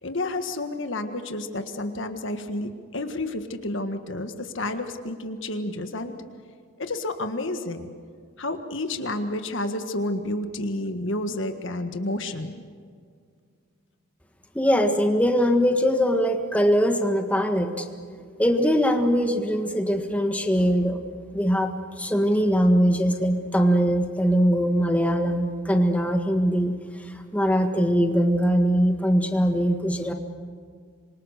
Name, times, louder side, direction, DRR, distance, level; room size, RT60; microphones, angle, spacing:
voice 1, 0.0-6.1 6.8-7.9 8.4-12.6, left 1 dB, 60° left, 7 dB, 1.6 m, -30 dB
voice 2, 14.5-17.9 18.4-21.0 21.3-26.7 27.3-30.1, equal, 5° left, 5 dB, 1.6 m, -21 dB
27.0 x 24.0 x 6.6 m, 2.1 s
head